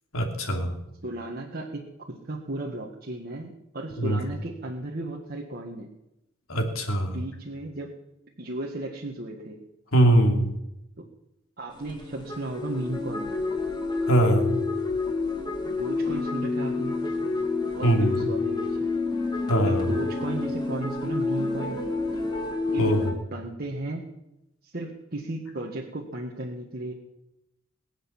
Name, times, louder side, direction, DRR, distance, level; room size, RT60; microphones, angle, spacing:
voice 1, 0.1-0.8 4.0-4.2 6.5-7.2 9.9-10.5 14.0-14.6 17.8-18.1 19.5-19.9 22.8-23.1, right 1 dB, 90° left, 3 dB, 3.0 m, -22 dB
voice 2, 1.0-5.9 7.1-7.9 8.4-9.6 11.6-13.4 15.8-17.0 17.7-19.0 19.6-22.3 22.7-24.1 24.6-26.9, right 1 dB, 50° right, -1 dB, 1.7 m, -35 dB
sound 1, 11.7-23.1, left 3 dB, 20° left, 2.1 m, -29 dB
22.0 x 8.2 x 7.2 m, 0.89 s
head